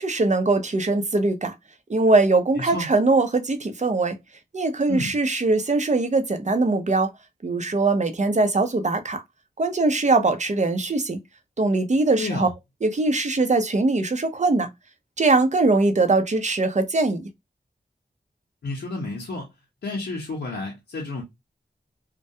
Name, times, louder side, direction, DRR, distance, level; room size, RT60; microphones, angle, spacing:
voice 1, 0.0-1.5 1.9-4.2 4.5-7.1 7.4-9.2 9.6-11.2 11.6-12.5 12.8-14.7 15.2-17.2, right 3 dB, 40° right, 0.6 m, -21 dB
voice 2, 2.6-2.9 4.9-5.1 12.2-12.5 18.6-19.5 19.8-21.2, left 2 dB, 85° left, 0.7 m, -31 dB
2.2 x 2.2 x 2.6 m
cardioid pair, 40°, 18 cm